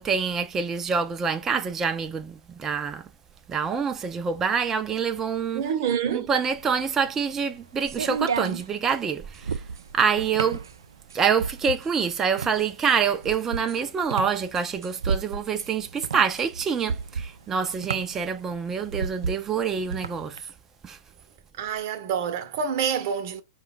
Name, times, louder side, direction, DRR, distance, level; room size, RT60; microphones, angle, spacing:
voice 1, 0.0-3.0 3.5-5.6 6.1-9.6 9.9-10.6 11.1-20.4 20.8-21.0, right 6 dB, 20° right, 0.5 m, -26 dB
voice 2, 5.5-6.3 21.6-23.4, right 7 dB, 50° right, 0.8 m, -27 dB
sound 1, 6.5-20.4, right 5 dB, 80° right, 0.3 m, -33 dB
4.8 x 2.3 x 3.7 m
hypercardioid pair, 115°, 2 cm